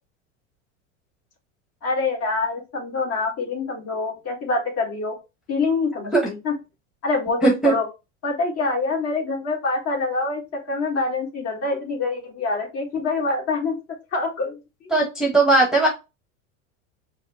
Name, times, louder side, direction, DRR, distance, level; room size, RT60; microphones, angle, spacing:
voice 1, 1.8-5.1 5.5-6.5 7.0-7.9 8.2-13.8 14.1-14.9, left 3 dB, 40° left, 1 dB, 1.6 m, -25 dB
voice 2, 7.4-7.7 14.9-15.9, right 2 dB, ahead, -1 dB, 1.0 m, -18 dB
4.6 x 2.0 x 3.4 m, 0.26 s
supercardioid pair, 115°, 39 cm